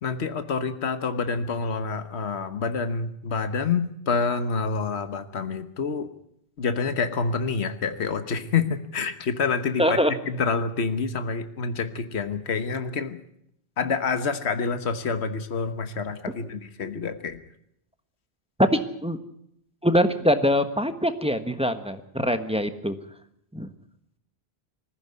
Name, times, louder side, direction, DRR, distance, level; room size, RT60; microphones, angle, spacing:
voice 1, 0.0-6.1 6.6-10.0 10.2-13.2 13.8-17.4, left 5 dB, 85° left, 10 dB, 1.5 m, -27 dB
voice 2, 9.8-10.1 18.6-19.2 19.8-22.9 23.5-23.7, equal, 5° right, 9 dB, 1.3 m, -23 dB
20.5 x 15.0 x 9.5 m, 0.74 s
omnidirectional pair, 1.1 m